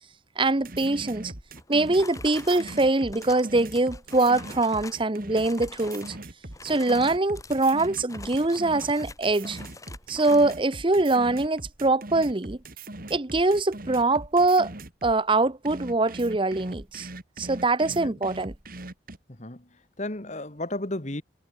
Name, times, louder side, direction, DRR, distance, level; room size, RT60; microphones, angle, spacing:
voice 1, 0.4-1.3 1.7-6.2 6.6-9.6 10.1-12.6 13.1-14.7 15.0-17.1 17.4-18.5, right 2 dB, 30° right, 0.9 m, -23 dB
sound 1, 0.6-15.2 15.6-19.2, right 2 dB, 50° right, 2.9 m, -41 dB
sound 2, 1.6-5.1 5.3-6.2 6.5-10.6, left 3 dB, 20° left, 6.3 m, -45 dB
voice 2, 17.9-18.2 19.3-21.2, left 1 dB, 40° left, 2.2 m, -34 dB
head